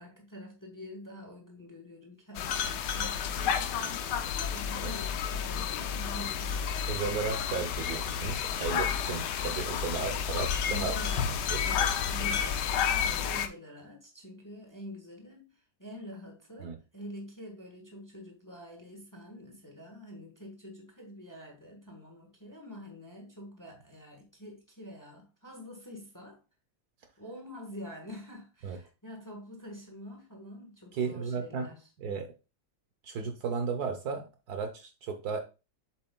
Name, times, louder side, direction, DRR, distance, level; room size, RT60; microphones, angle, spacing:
voice 1, 0.0-4.0 4.5-6.6 10.7-26.4 27.2-31.8, equal, 10° left, 1.1 m, -46 dB
sound 1, 2.4-13.5, left 7 dB, 70° left, 1.2 m, -31 dB
voice 2, 6.9-10.9 11.5-11.6 16.6-16.8 28.6-28.8 30.9-31.7 32.0-32.3 33.0-35.4, right 5 dB, 65° right, 1.2 m, -34 dB
7.6 x 7.3 x 2.3 m
omnidirectional pair, 2.0 m